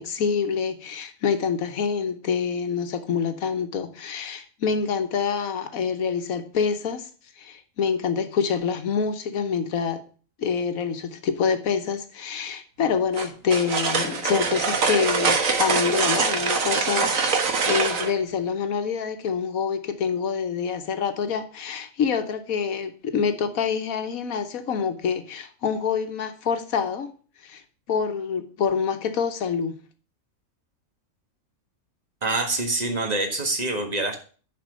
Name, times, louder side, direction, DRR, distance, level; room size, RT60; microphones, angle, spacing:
voice 1, 0.0-7.1 7.4-10.0 10.4-27.1 27.4-27.6 27.9-29.8, left 6 dB, 85° left, 8 dB, 1.4 m, -26 dB
sound 1, 13.1-18.1, right 5 dB, 75° right, 1.7 m, -23 dB
voice 2, 32.2-34.2, right 2 dB, 30° right, 4 dB, 1.7 m, -25 dB
11.0 x 4.5 x 6.2 m, 0.40 s
omnidirectional pair, 1.4 m